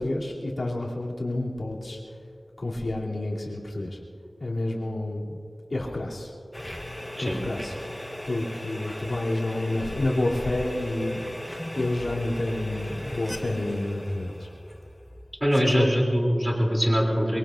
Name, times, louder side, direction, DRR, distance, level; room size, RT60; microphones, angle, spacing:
voice 1, 0.0-2.0 2.6-4.0 4.4-5.4 5.7-6.3 7.2-7.7 8.3-11.2 11.7-14.5 15.5-15.9, left 2 dB, 75° left, -4 dB, 3.0 m, -29 dB
sound 1, 6.5-15.7, left 1 dB, 10° left, 1.2 m, -38 dB
voice 2, 15.4-17.4, equal, 10° right, -1 dB, 3.0 m, -23 dB
24.0 x 23.0 x 2.6 m, 2.4 s
wide cardioid pair, 65°, 0 cm